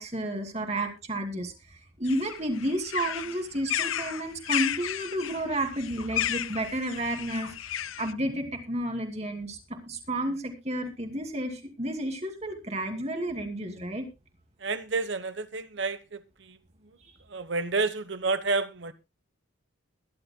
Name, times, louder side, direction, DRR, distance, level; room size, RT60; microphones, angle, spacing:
voice 1, 0.0-7.7 8.0-9.6 9.9-14.1, right 1 dB, 30° right, 2.6 m, -31 dB
sound 1, 2.1-8.1, left 11 dB, 80° left, 0.6 m, -33 dB
voice 2, 14.6-16.6 17.3-18.9, right 3 dB, 60° right, 1.1 m, -30 dB
21.5 x 11.0 x 2.2 m
head